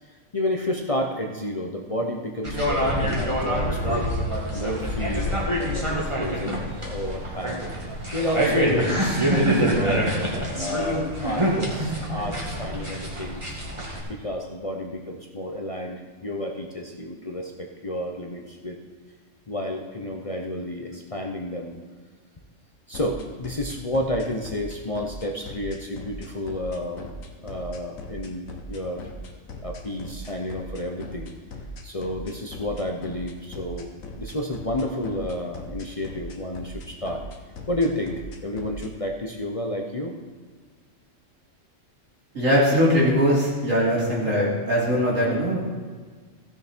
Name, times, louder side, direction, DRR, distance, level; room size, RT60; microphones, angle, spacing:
voice 1, 0.1-4.1 4.5-7.9 8.1-10.1 10.6-13.6 14.1-18.8 19.5-21.7 22.9-27.1 27.4-29.0 29.6-31.3 31.8-33.9 34.2-37.2 37.7-40.1, left 1 dB, 30° left, 1 dB, 0.7 m, -31 dB
sound 1, 2.4-14.0, equal, 20° right, 2.0 m, -25 dB
sound 2, 22.9-38.9, left 3 dB, 90° left, 1.5 m, -40 dB
voice 2, 42.3-45.6, equal, 80° right, -5 dB, 3.3 m, -21 dB
15.5 x 6.9 x 4.4 m, 1.5 s
omnidirectional pair, 1.4 m